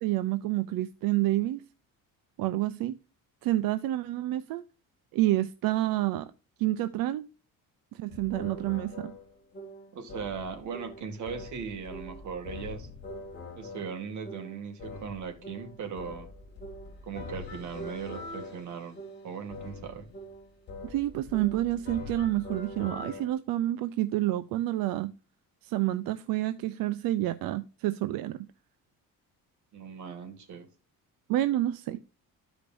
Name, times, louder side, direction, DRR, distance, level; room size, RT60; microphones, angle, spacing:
voice 1, 0.0-1.6 2.4-3.0 3.4-4.6 5.1-6.3 6.6-7.3 7.9-9.1 20.8-25.1 25.6-28.4 31.3-32.0, right 15 dB, 85° right, 0.6 m, -28 dB
sound 1, 8.1-23.3, left 2 dB, 30° left, 2.4 m, -43 dB
voice 2, 9.9-12.9 13.5-16.3 17.1-19.0 19.2-20.0 29.7-30.7, right 6 dB, 60° right, 2.1 m, -38 dB
13.5 x 5.2 x 2.5 m
cardioid pair, 160°, 34 cm